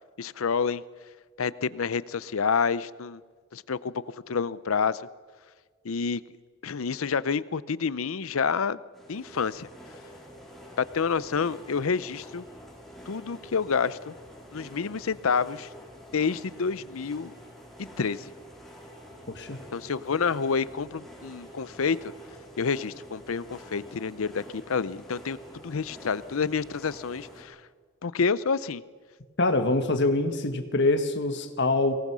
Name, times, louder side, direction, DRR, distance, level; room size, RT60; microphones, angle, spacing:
voice 1, 0.2-0.8 1.4-3.2 3.5-5.0 5.8-6.2 6.6-8.8 9.1-9.7 10.8-12.5 13.1-14.1 14.5-15.7 16.1-17.3 17.8-18.3 19.7-22.0 22.6-25.4 25.6-27.6 28.0-28.8, left 5 dB, 80° left, 18 dB, 0.6 m, -28 dB
sound 1, 8.9-27.4, equal, ahead, 4.5 m, -47 dB
voice 2, 19.3-19.6 29.4-32.0, left 2 dB, 60° left, 8 dB, 1.8 m, -25 dB
24.0 x 19.0 x 6.3 m, 1.5 s
head